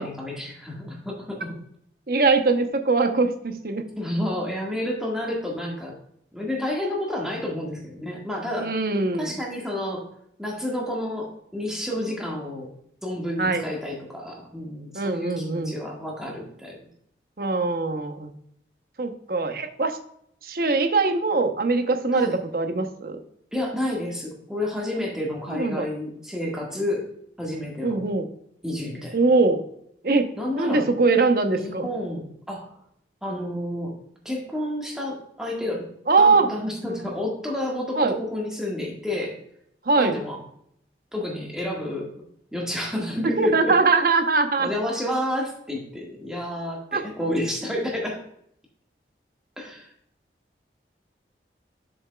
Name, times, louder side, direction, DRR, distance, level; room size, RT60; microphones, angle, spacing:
voice 1, 0.0-1.5 4.0-5.9 6.3-8.7 9.2-10.0 10.4-12.7 13.0-16.8 22.1-22.4 23.5-27.0 27.4-28.1 28.6-29.2 30.4-30.8 31.5-32.7 33.2-33.9 34.2-35.9 36.2-39.3 40.0-40.4 41.1-42.1 42.5-43.7 44.6-48.2 49.6-49.9, left 1 dB, 5° right, -2 dB, 1.7 m, -30 dB
voice 2, 2.1-3.9 8.6-9.3 13.4-13.6 14.9-15.8 17.4-18.3 19.0-20.0 20.4-23.2 25.5-25.9 27.8-28.3 29.1-29.6 30.0-31.9 36.1-36.5 36.9-37.0 38.0-38.2 39.9-40.1 43.4-44.7 46.9-47.0, right 3 dB, 55° right, 7 dB, 0.8 m, -22 dB
8.1 x 7.1 x 2.3 m, 0.71 s
head